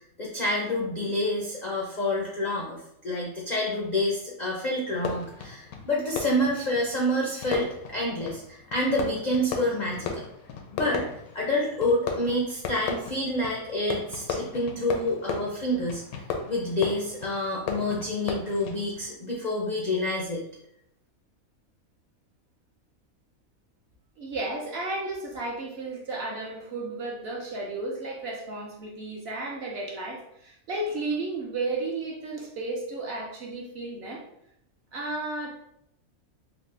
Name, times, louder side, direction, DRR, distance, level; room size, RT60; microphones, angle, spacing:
voice 1, 0.2-10.2 10.7-11.0 11.3-16.0 16.5-20.4, left 1 dB, 65° left, -3 dB, 0.4 m, -28 dB
Fireworks, 4.9-19.1, left 5 dB, 85° left, 1.1 m, -36 dB
voice 2, 24.2-34.2 34.9-35.6, right 2 dB, 60° right, -1 dB, 0.7 m, -33 dB
4.0 x 2.1 x 3.2 m, 0.76 s
omnidirectional pair, 1.5 m